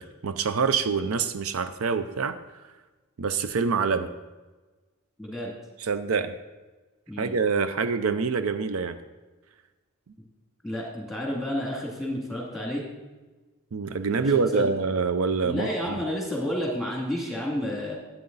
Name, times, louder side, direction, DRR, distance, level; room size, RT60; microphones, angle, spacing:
voice 1, 0.0-2.4 3.2-4.1 5.8-6.4 7.2-9.0 13.7-16.0, right 5 dB, 75° right, 10 dB, 0.5 m, -26 dB
voice 2, 5.2-5.5 7.1-7.4 10.6-12.8 14.1-14.7 15.4-17.9, left 1 dB, ahead, -3 dB, 2.4 m, -31 dB
11.5 x 8.5 x 4.0 m, 1.2 s
head